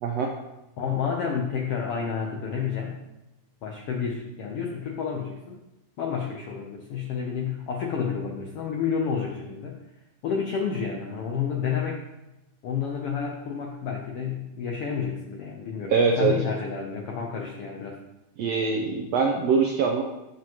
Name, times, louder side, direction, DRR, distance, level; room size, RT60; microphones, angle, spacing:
voice 1, 0.8-3.0 3.6-5.6 6.0-9.8 10.2-12.0 12.6-18.0, left 6 dB, 80° left, 0 dB, 1.3 m, -30 dB
voice 2, 15.9-16.3 18.4-20.0, right 5 dB, 85° right, 1 dB, 1.4 m, -23 dB
13.5 x 5.1 x 3.0 m, 0.97 s
omnidirectional pair, 3.6 m